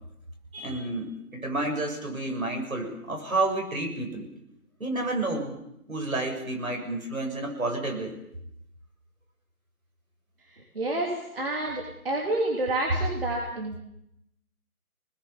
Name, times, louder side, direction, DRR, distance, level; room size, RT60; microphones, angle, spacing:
voice 1, 0.5-4.3 4.8-5.6 5.9-8.2, right 2 dB, 65° right, 2 dB, 7.0 m, -30 dB
voice 2, 10.5-13.8, right 2 dB, 40° right, -1 dB, 3.3 m, -29 dB
24.0 x 20.5 x 7.1 m, 0.80 s
figure-of-eight pair, 175°, 44 cm